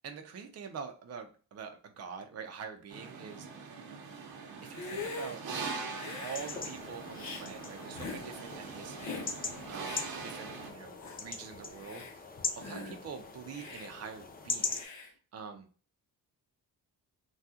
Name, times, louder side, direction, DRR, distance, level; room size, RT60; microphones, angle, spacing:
voice 1, 0.0-3.8 4.6-5.4 6.2-12.1 12.6-15.7, right 6 dB, 45° right, 5 dB, 0.6 m, -45 dB
sound 1, 2.9-10.7, right 4 dB, 85° right, 0.9 m, -42 dB
Hiss, 4.6-5.4 5.9-6.6 7.1-7.5 7.9-8.2 9.0-9.3 9.8-10.1 10.6-10.7 11.0-11.2 11.7-12.1 12.6-13.0 13.5-13.9 14.7-15.1, left 4 dB, 50° left, 0.8 m, -42 dB
sound 2, 6.2-14.8, left 4 dB, 25° left, 0.5 m, -41 dB
3.5 x 2.3 x 2.8 m, 0.38 s
cardioid pair, 115°, 35 cm